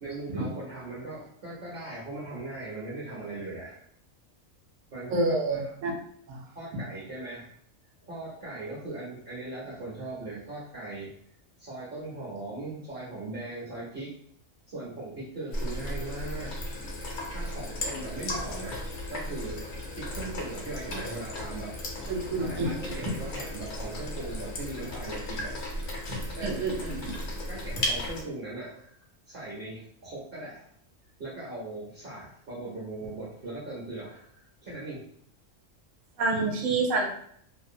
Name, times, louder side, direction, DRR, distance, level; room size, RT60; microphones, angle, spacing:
voice 1, 0.0-3.8 4.9-5.8 6.5-7.5 8.0-11.1 11.6-14.2 14.7-16.6 17.3-19.6 19.9-21.8 22.4-25.6 26.4-26.7 27.5-28.9 29.3-30.6 31.2-35.1, right 2 dB, 50° right, -7 dB, 0.8 m, -39 dB
voice 2, 5.1-5.9 6.3-6.4 22.1-23.0 26.1-27.0 36.2-37.1, right 3 dB, 75° right, 1 dB, 1.0 m, -28 dB
sound 1, 15.5-28.2, left 1 dB, 60° left, 0.8 m, -35 dB
2.6 x 2.1 x 2.6 m, 0.65 s
omnidirectional pair, 1.4 m